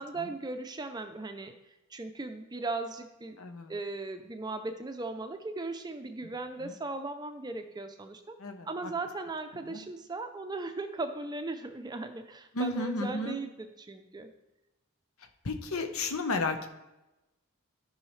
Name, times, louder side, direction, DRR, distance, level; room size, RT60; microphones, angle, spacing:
voice 1, 0.0-1.5 1.9-3.4 3.7-8.4 8.7-14.3, right 3 dB, 20° right, 7 dB, 0.5 m, -37 dB
voice 2, 3.4-3.7 6.6-6.7 8.4-8.9 9.7-9.8 12.5-13.4 15.4-16.7, left 2 dB, 75° left, 6 dB, 0.9 m, -33 dB
13.5 x 5.5 x 3.2 m, 1.0 s
head